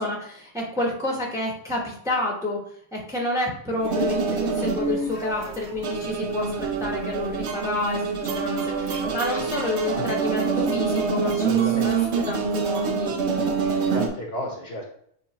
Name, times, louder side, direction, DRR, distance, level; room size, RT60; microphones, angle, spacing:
voice 1, 0.0-2.6 2.9-6.5 6.8-11.3 11.8-12.0 12.3-13.2, left 1 dB, 5° right, -1 dB, 0.9 m, -29 dB
sound 1, 3.8-14.1, right 5 dB, 65° right, 0.9 m, -26 dB
sound 2, 4.3-5.5 7.7-9.3, right 2 dB, 80° left, 2.1 m, -41 dB
voice 2, 8.9-9.5 9.8-10.0 11.2-11.9 12.2-12.3 13.2-13.3 13.8-14.9, left 1 dB, 60° left, 0 dB, 1.3 m, -33 dB
6.9 x 2.4 x 3.0 m, 0.67 s
omnidirectional pair, 1.3 m